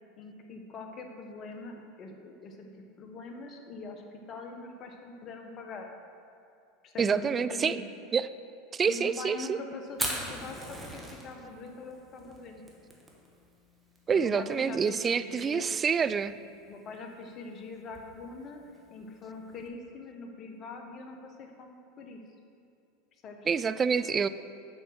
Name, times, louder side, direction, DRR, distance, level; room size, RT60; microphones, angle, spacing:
voice 1, 0.2-2.7 3.0-5.9 6.8-7.8 8.9-12.6 14.1-15.7 16.7-18.6 18.9-22.2 23.2-23.4, left 3 dB, 45° left, 4 dB, 1.1 m, -43 dB
voice 2, 7.0-7.8 8.1-8.3 8.7-9.6 14.1-16.3 23.5-24.3, right 6 dB, 30° right, 14 dB, 0.3 m, -27 dB
Fire, 9.9-19.7, right 1 dB, 10° right, 1.5 m, -42 dB
6.2 x 6.0 x 6.2 m, 2.5 s
hypercardioid pair, 90°, 0 cm